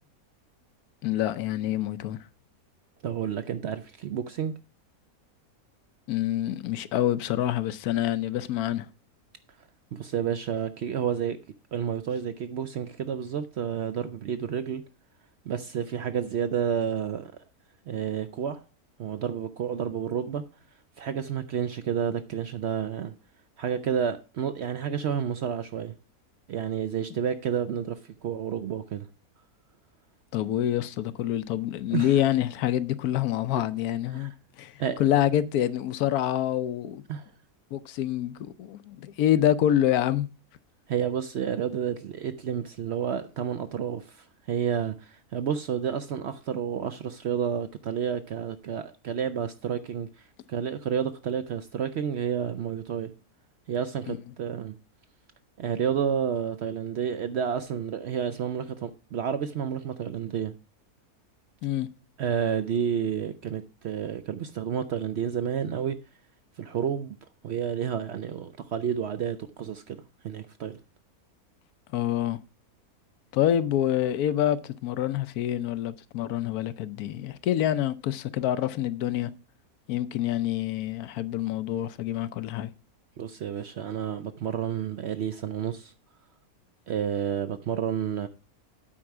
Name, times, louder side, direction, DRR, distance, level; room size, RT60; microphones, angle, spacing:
voice 1, 1.0-2.2 6.1-8.9 30.3-34.3 34.6-34.7 35.0-37.0 37.7-40.3 54.1-54.2 61.6-61.9 71.9-72.4 73.3-79.3 79.9-82.7, left 12 dB, 80° left, 1.1 m, -26 dB
voice 2, 3.0-4.5 9.9-11.4 11.7-14.8 15.5-17.3 17.9-18.6 19.0-20.4 21.0-23.1 23.6-25.9 26.5-29.1 31.9-32.1 34.1-34.3 34.8-35.0 37.1-37.3 40.9-53.1 53.7-54.8 55.6-60.5 62.2-66.0 66.6-67.2 67.4-70.8 83.2-85.9 86.9-88.3, right 8 dB, 65° right, 0.7 m, -30 dB
8.7 x 4.6 x 5.9 m
omnidirectional pair, 1.6 m